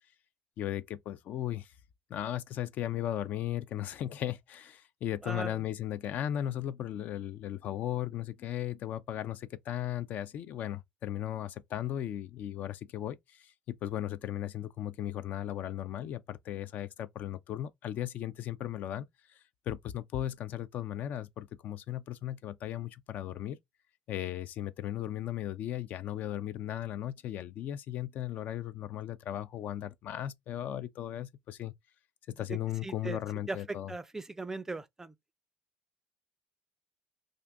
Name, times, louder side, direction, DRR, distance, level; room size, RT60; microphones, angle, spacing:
voice 1, 0.6-1.7 2.1-19.1 19.7-23.6 24.1-31.7 32.4-33.9, left 12 dB, 60° left, 0.3 m, -36 dB
voice 2, 5.2-5.6 32.5-33.2 33.5-35.1, right 3 dB, 15° right, 0.4 m, -39 dB
2.5 x 2.4 x 3.3 m
supercardioid pair, 85°, 3 cm